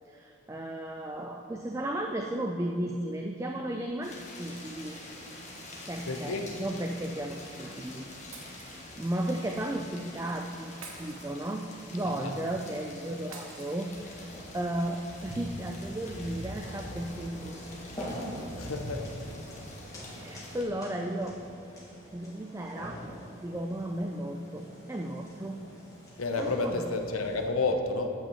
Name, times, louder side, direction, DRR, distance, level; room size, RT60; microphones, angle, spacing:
voice 1, 0.1-5.0 5.9-8.1 8.3-11.7 11.9-17.6 18.2-18.4 20.1-21.4 22.1-23.0 23.4-25.6 26.4-26.7, right 1 dB, 15° right, 2 dB, 0.3 m, -35 dB
sound 1, 4.0-20.6, left 1 dB, 35° left, 1.4 m, -46 dB
voice 2, 6.1-6.5 12.1-12.3 18.6-19.0 26.2-28.1, left 3 dB, 85° left, 5 dB, 0.7 m, -30 dB
Shatter, 8.3-9.2 10.8-11.9 13.3-14.3, right 4 dB, 80° right, 1.3 m, -48 dB
sound 2, 13.9-27.5, equal, 15° left, 1.5 m, -44 dB
8.6 x 5.7 x 7.0 m, 2.5 s
head